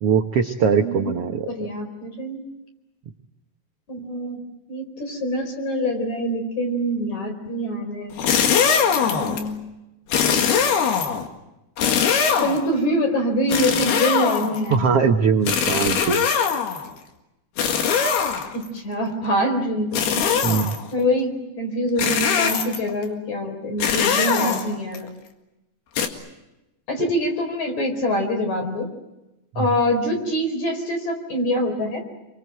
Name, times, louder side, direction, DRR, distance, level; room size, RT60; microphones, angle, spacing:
voice 1, 0.0-1.5 14.7-16.2 20.4-20.7 29.5-29.7, right 6 dB, 70° right, 4 dB, 1.4 m, -21 dB
voice 2, 0.8-2.4 3.9-4.4 4.7-8.2 9.0-9.6 12.4-14.9 18.5-20.4 20.9-25.1 26.9-28.9 29.6-32.0, equal, 50° left, 5 dB, 5.6 m, -25 dB
sound 1, 8.1-9.5 10.1-11.3 11.8-12.7 13.5-14.7 15.5-16.9 17.6-18.7 19.9-20.9 22.0-22.9 23.8-25.0 26.0-26.1, left 7 dB, 90° left, 3.9 m, -21 dB
28.5 x 24.0 x 7.8 m, 0.96 s
omnidirectional pair, 4.4 m